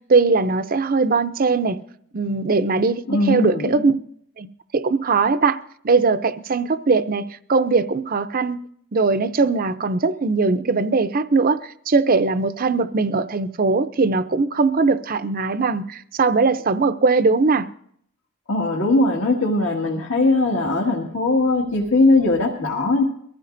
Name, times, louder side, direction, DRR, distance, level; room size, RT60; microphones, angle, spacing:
voice 1, 0.1-1.8 2.1-3.9 4.4-4.5 4.7-5.6 5.8-8.6 8.9-17.7, right 4 dB, 40° right, 0.6 m, -20 dB
voice 2, 3.1-3.9 18.5-23.0, left 2 dB, 65° left, 2.0 m, -20 dB
23.0 x 15.0 x 2.6 m
head